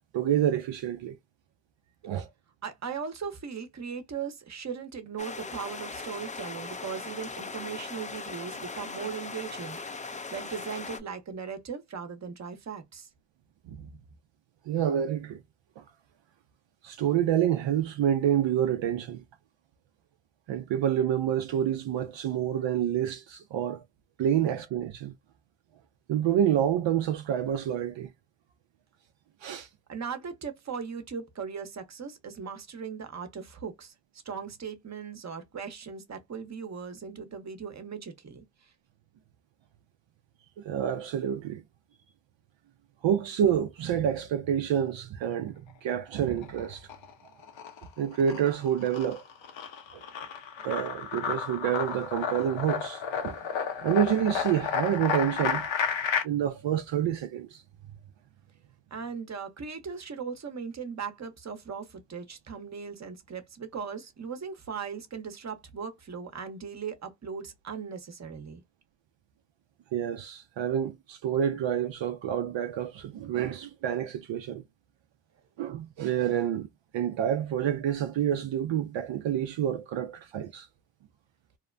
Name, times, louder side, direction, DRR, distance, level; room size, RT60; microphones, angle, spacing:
voice 1, 0.1-1.2 2.0-2.3 13.7-13.9 14.7-15.4 15.8-15.9 16.8-19.2 20.5-23.8 24.2-25.1 26.1-28.1 29.4-29.7 40.6-41.6 43.0-46.9 48.0-49.2 49.9-50.0 50.6-53.4 53.8-55.8 56.2-57.6 69.9-74.6 75.6-76.7 76.9-80.7, right 9 dB, 70° right, 0.5 m, -28 dB
voice 2, 2.6-13.1 29.9-33.9 34.2-38.7 58.9-68.6, right 6 dB, 35° right, 0.8 m, -38 dB
sound 1, 5.2-11.0, left 4 dB, 15° left, 0.4 m, -39 dB
sound 2, 46.3-47.1 47.4-56.2, left 7 dB, 75° left, 0.8 m, -32 dB
2.8 x 2.1 x 2.5 m
cardioid pair, 65°, 47 cm